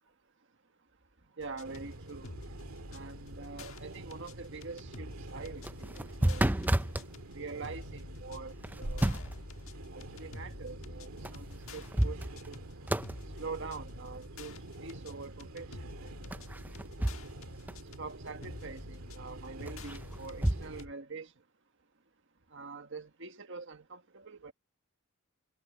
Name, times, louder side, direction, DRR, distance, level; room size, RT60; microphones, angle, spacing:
sound 1, 1.4-20.9, left 2 dB, 70° left, 1.6 m, -49 dB
voice 1, 1.4-2.3 2.9-6.5 7.3-9.2 9.9-12.6 13.4-16.1 18.0-21.3 22.5-24.5, right 4 dB, 60° right, 1.7 m, -45 dB
sound 2, 1.6-20.9, right 1 dB, 80° right, 2.0 m, -47 dB
sound 3, 5.5-7.1 8.6-9.4 11.2-11.3 11.7-12.6 12.9-13.2 16.3-17.4 17.7-17.8 19.6-20.6, right 1 dB, 10° right, 0.5 m, -31 dB
head